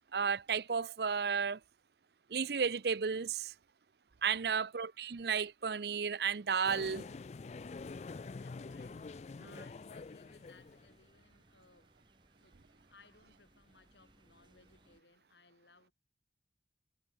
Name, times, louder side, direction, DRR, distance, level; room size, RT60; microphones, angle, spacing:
voice 1, 0.1-1.6 2.3-3.5 4.2-7.1, right 6 dB, 65° right, 0.6 m, -33 dB
voice 2, 4.3-4.7 8.3-12.0 12.4-15.9, left 4 dB, 85° left, 5.8 m, -64 dB
sound 1, 6.6-11.0, left 4 dB, 40° left, 0.4 m, -46 dB
sound 2, 8.8-15.0, right 1 dB, 25° right, 5.0 m, -68 dB
head